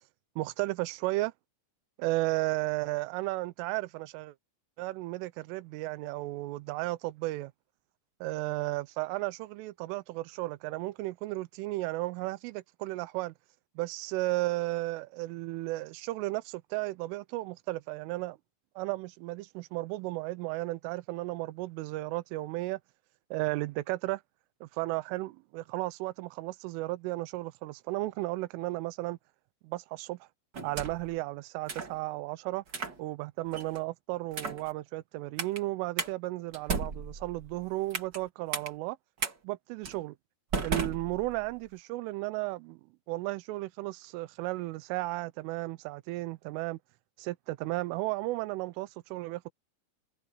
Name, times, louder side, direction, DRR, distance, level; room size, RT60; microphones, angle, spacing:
voice 1, 0.4-1.3 2.0-4.3 4.8-7.5 8.2-13.3 13.8-18.4 18.8-22.8 23.3-24.2 24.6-29.2 29.6-30.2 30.6-32.6 33.0-39.0 39.4-40.2 40.6-42.8 43.1-46.8 47.2-49.5, right 20 dB, 85° right, 3.3 m, -34 dB
sound 1, 30.5-31.1 31.7-32.0 32.7-33.0 33.5-33.8 34.3-34.7 35.4-35.6 36.0-36.1 36.5-38.2 38.5-38.7 39.2-39.3 39.8-40.0 40.5-41.6, right 5 dB, 40° right, 1.6 m, -35 dB
omnidirectional pair, 5.8 m